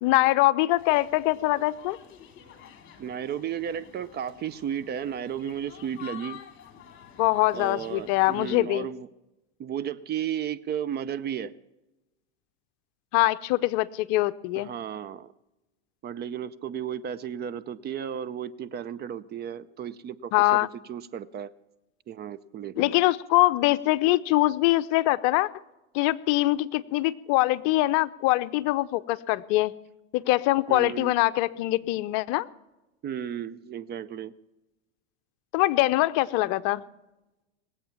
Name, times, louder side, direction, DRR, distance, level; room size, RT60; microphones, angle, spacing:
voice 1, 0.0-2.0 7.2-8.9 13.1-14.7 20.3-20.7 22.8-25.5 25.9-29.7 30.1-32.5 35.5-36.8, left 18 dB, 50° left, 14 dB, 0.7 m, -23 dB
sound 1, 0.8-8.6, left 9 dB, 35° left, 2.9 m, -49 dB
voice 2, 3.0-6.4 7.5-9.1 9.6-11.5 14.5-15.3 16.0-20.6 20.9-21.5 22.1-23.0 30.7-31.1 33.0-34.3, right 9 dB, 30° right, 15 dB, 0.6 m, -34 dB
20.5 x 8.2 x 7.1 m, 0.99 s
hypercardioid pair, 110°, 35 cm